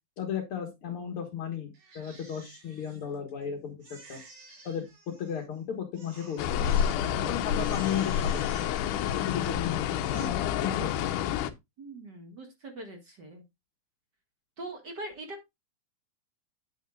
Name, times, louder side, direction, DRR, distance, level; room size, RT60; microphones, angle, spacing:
voice 1, 0.2-3.8 4.1-4.2 4.6-4.8 5.2-6.6 7.2-8.7 9.1-10.3 10.6-10.9, left 8 dB, 50° left, 0 dB, 2.1 m, -35 dB
Crying sobbing, 1.7-3.4 3.8-5.6 5.9-7.2 7.5-9.6 9.9-10.3, right 3 dB, 80° right, 5.4 m, -52 dB
sound 1, 6.4-11.5, left 9 dB, 90° left, 2.3 m, -28 dB
voice 2, 11.8-13.4 14.6-15.5, right 2 dB, 40° right, 4 dB, 1.9 m, -42 dB
9.3 x 8.8 x 2.4 m, 0.20 s
omnidirectional pair, 3.6 m